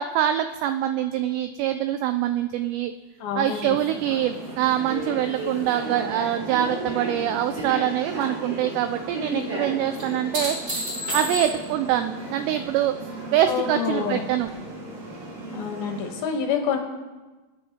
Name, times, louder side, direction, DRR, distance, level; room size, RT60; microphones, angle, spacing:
voice 1, 0.0-2.9 3.4-10.6 11.1-12.9 13.3-14.5, right 11 dB, 85° right, 9 dB, 2.4 m, -24 dB
voice 2, 3.2-3.8 13.5-14.2 15.5-16.8, left 7 dB, 70° left, 3 dB, 2.4 m, -27 dB
sound 1, 3.5-6.9 7.3-7.9 10.0-11.9 14.5-14.6, equal, 20° right, 3.8 m, -34 dB
sound 2, 3.8-16.1, right 2 dB, 50° right, 6.8 m, -35 dB
24.0 x 10.0 x 2.8 m, 1.2 s
omnidirectional pair, 5.4 m